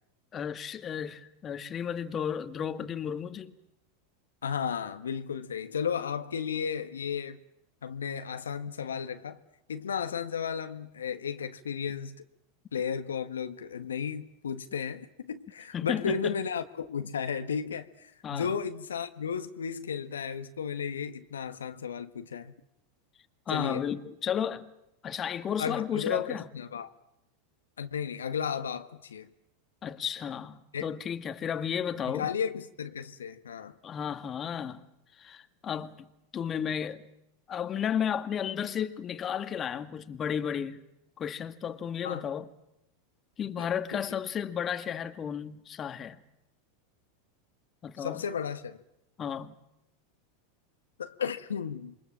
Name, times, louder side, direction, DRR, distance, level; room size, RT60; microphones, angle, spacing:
voice 1, 0.3-3.5 15.7-16.3 18.2-18.5 23.5-24.7 25.0-26.5 29.8-32.3 33.8-34.8 35.2-36.1 36.3-37.0 37.5-40.8 41.2-42.5 43.4-46.2 47.8-48.2 49.2-49.5, left 8 dB, 30° left, 2.0 m, -33 dB
voice 2, 4.4-7.4 7.8-9.4 9.7-12.2 12.7-22.5 23.5-23.9 25.6-26.9 27.8-29.3 30.7-30.9 32.1-33.7 42.0-42.3 43.6-44.0 48.0-48.8 51.0-51.9, left 7 dB, 80° left, 1.5 m, -34 dB
28.0 x 23.5 x 7.5 m
hypercardioid pair, 95°, 0 cm